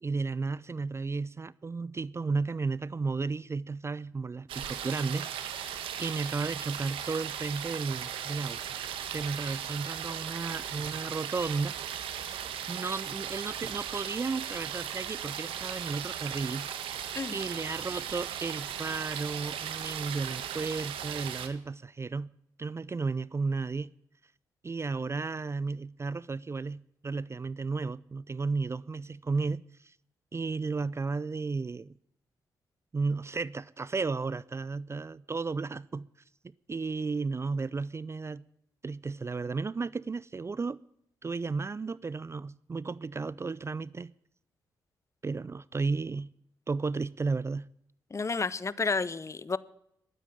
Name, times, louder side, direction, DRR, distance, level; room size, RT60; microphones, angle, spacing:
voice 1, 0.0-5.7 6.0-8.6 9.1-11.8 12.7-16.7 17.3-22.3 22.6-23.9 24.6-29.9 30.3-31.9 32.9-36.1 36.7-38.4 38.8-40.8 41.2-44.1 45.2-46.3 46.7-47.7, right 4 dB, 30° right, 0.4 m, -33 dB
sound 1, 4.5-21.5, right 9 dB, 80° right, 1.3 m, -37 dB
voice 2, 48.1-49.6, left 4 dB, 35° left, 0.8 m, -31 dB
12.0 x 9.3 x 9.0 m
supercardioid pair, 50°, 9 cm